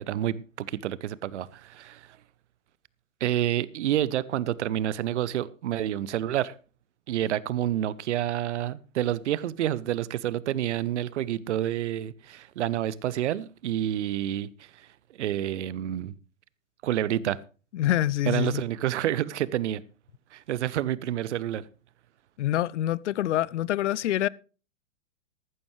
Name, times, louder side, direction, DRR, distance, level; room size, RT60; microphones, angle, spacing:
voice 1, 0.0-2.1 3.2-6.5 7.1-14.5 15.2-16.1 16.8-17.4 18.3-19.8 20.3-21.6, right 12 dB, 60° right, 0.9 m, -28 dB
voice 2, 17.7-18.6 22.4-24.3, left 13 dB, 65° left, 0.6 m, -26 dB
14.0 x 12.5 x 3.2 m
figure-of-eight pair, 110°, 39 cm